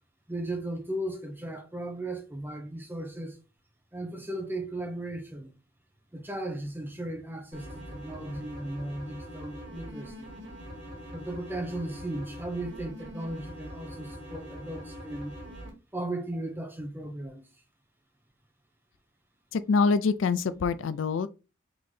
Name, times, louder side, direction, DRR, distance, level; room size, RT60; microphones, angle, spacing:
voice 1, 0.3-3.4 3.9-5.5 6.1-10.3 11.1-15.3 15.9-17.4, right 1 dB, 10° right, 0.9 m, -36 dB
sound 1, 7.5-15.7, equal, 65° right, 1.5 m, -43 dB
voice 2, 19.5-21.3, left 4 dB, 70° left, 0.4 m, -25 dB
3.8 x 3.8 x 3.2 m
head